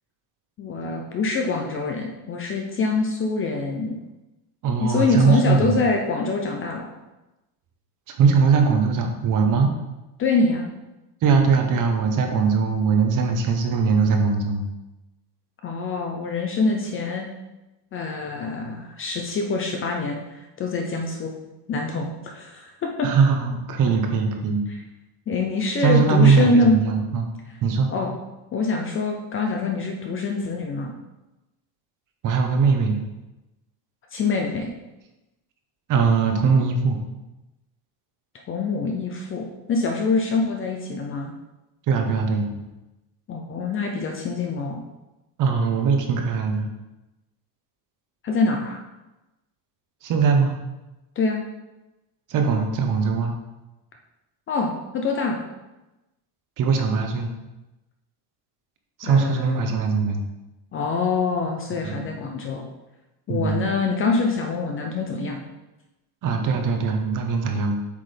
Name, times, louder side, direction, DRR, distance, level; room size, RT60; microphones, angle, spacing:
voice 1, 0.6-3.9 4.8-6.9 10.2-10.7 15.6-17.3 17.9-21.3 21.7-23.1 25.3-26.8 27.9-28.1 28.5-30.9 34.1-34.7 38.5-41.3 43.3-44.8 48.2-48.8 51.2-51.4 54.5-55.4 59.0-59.6 60.7-62.7 63.3-65.4, left 3 dB, 25° left, 2 dB, 0.6 m, -25 dB
voice 2, 4.6-5.8 8.1-9.7 11.2-14.6 23.0-24.6 25.8-27.3 27.6-27.9 32.2-33.0 35.9-37.0 41.9-42.5 45.4-46.7 50.0-50.6 52.3-53.3 56.6-57.3 59.0-60.2 61.8-62.1 63.3-63.6 66.2-67.8, right 5 dB, 40° right, 4 dB, 1.0 m, -21 dB
8.4 x 5.9 x 3.4 m, 1.0 s
cardioid pair, 175°, 48 cm